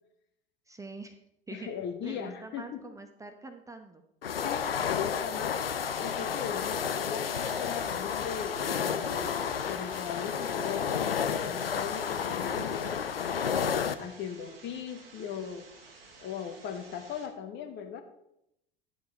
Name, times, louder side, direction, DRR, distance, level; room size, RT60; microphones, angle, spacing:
voice 1, 0.7-1.1 1.5-1.7 2.0-4.0 8.7-9.2, right 3 dB, 10° right, 6 dB, 0.9 m, -45 dB
voice 2, 1.5-2.8 4.4-5.5 6.0-8.6 8.9-13.4 13.7-15.6 16.2-18.0, left 8 dB, 40° left, 7 dB, 1.3 m, -39 dB
sound 1, 4.2-13.9, left 7 dB, 80° left, 0.6 m, -31 dB
sound 2, 7.2-17.3, right 3 dB, 75° right, 1.7 m, -53 dB
11.0 x 7.8 x 4.0 m, 0.81 s
figure-of-eight pair, 75°, 29 cm